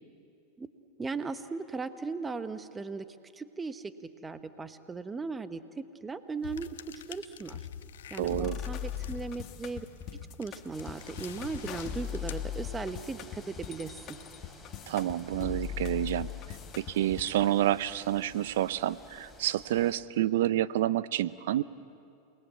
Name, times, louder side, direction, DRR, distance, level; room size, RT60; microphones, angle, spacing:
voice 1, 1.0-3.1 3.3-3.9 4.2-6.7 7.1-7.6 8.1-9.9 10.4-14.2, right 4 dB, 15° right, 10 dB, 1.1 m, -37 dB
sound 1, 6.4-13.1, left 9 dB, 85° left, 1.0 m, -47 dB
sound 2, 8.2-17.3, left 10 dB, 40° left, 1.7 m, -39 dB
voice 2, 8.2-8.6 14.9-16.3 16.8-21.6, right 13 dB, 75° right, 17 dB, 0.7 m, -28 dB
sound 3, 10.7-19.9, left 2 dB, 10° left, 6.1 m, -52 dB
28.5 x 20.5 x 8.3 m, 2.6 s
hypercardioid pair, 110°, 0 cm